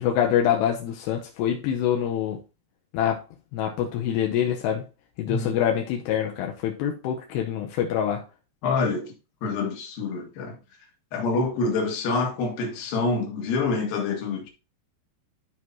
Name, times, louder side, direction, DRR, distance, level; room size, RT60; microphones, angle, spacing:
voice 1, 0.0-2.4 2.9-3.2 3.5-4.8 5.2-8.2, left 9 dB, 80° left, 2.9 m, -25 dB
voice 2, 5.3-5.6 8.6-9.1 9.4-10.6 11.1-14.5, left 3 dB, 65° left, 3.3 m, -26 dB
12.5 x 4.7 x 2.8 m
omnidirectional pair, 4.9 m